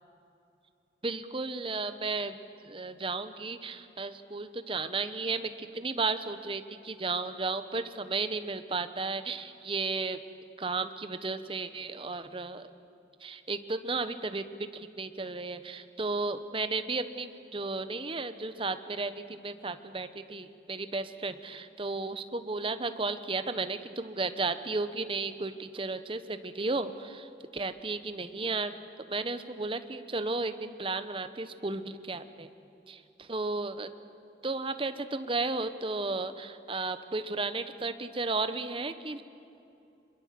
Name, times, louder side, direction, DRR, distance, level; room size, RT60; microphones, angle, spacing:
voice 1, 1.0-2.4 2.6-10.2 10.6-12.7 13.2-14.5 14.7-28.8 29.1-32.5 32.9-33.9 34.4-39.2, right 3 dB, 30° right, 11 dB, 1.1 m, -34 dB
26.0 x 22.5 x 7.7 m, 2.7 s
head